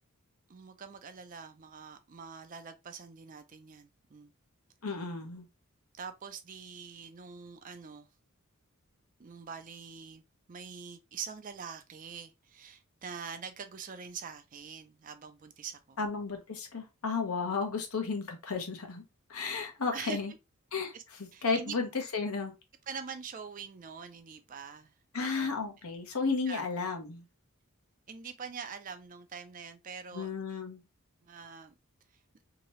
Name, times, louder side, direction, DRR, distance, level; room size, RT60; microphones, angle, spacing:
voice 1, 0.5-4.3 6.0-8.1 9.2-10.2 10.5-16.0 19.9-20.2 20.9-21.0 21.3-21.8 22.9-25.5 26.5-26.7 28.1-30.3 31.2-31.7 32.1-32.2, right 6 dB, 35° right, 0.4 m, -44 dB
voice 2, 4.8-5.4 16.0-19.0 19.3-20.3 20.7-20.9 21.2-22.5 25.1-27.2 30.1-30.8, left 4 dB, 80° left, 0.9 m, -33 dB
2.9 x 2.8 x 3.0 m
head